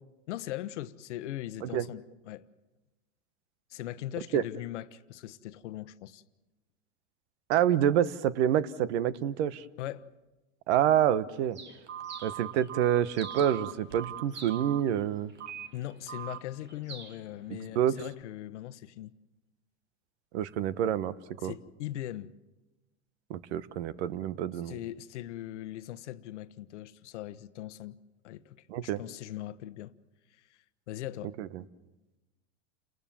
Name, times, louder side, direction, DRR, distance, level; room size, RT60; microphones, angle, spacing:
voice 1, 0.3-2.5 3.7-6.2 9.8-10.1 15.7-19.1 21.4-22.3 24.6-28.0 28.2-30.0 30.4-30.5 30.9-31.3, left 13 dB, 80° left, 1.0 m, -40 dB
voice 2, 7.5-9.6 10.7-11.6 12.2-15.3 17.5-18.0 20.3-21.1 21.4-21.5 23.3-24.8 28.7-29.0 31.4-31.6, right 10 dB, 70° right, 1.1 m, -27 dB
Bird, 11.5-18.2, right 4 dB, 30° right, 2.4 m, -51 dB
Telephone, 11.9-14.8 15.4-15.7 16.1-16.4, right 10 dB, 90° right, 2.2 m, -40 dB
30.0 x 20.0 x 7.3 m
supercardioid pair, 110°, 35 cm